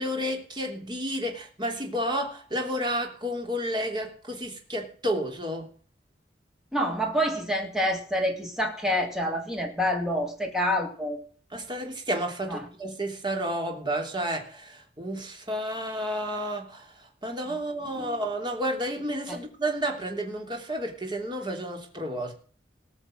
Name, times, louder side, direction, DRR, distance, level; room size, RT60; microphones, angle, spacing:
voice 1, 0.0-5.7 11.5-22.3, equal, 25° right, 2 dB, 3.0 m, -31 dB
voice 2, 6.7-11.2 12.5-12.6 18.0-18.1 19.3-19.4, equal, 5° right, 2 dB, 2.8 m, -27 dB
19.0 x 6.4 x 6.4 m, 0.44 s
head